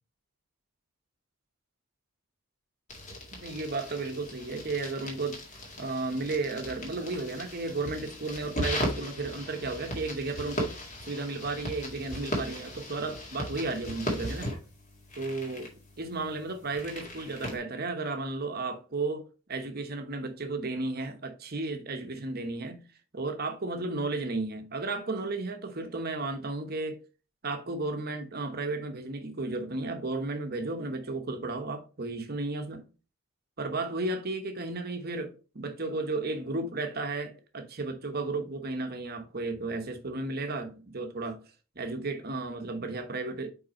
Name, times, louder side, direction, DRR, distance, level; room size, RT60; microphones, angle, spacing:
sound 1, 2.9-17.6, equal, 35° left, 1.9 m, -38 dB
voice 1, 3.3-5.4 5.8-10.7 11.0-14.6 15.2-22.8 23.1-27.0 27.4-32.8 33.6-41.4 41.8-43.5, right 3 dB, 45° right, 1.0 m, -34 dB
5.3 x 4.7 x 4.2 m
head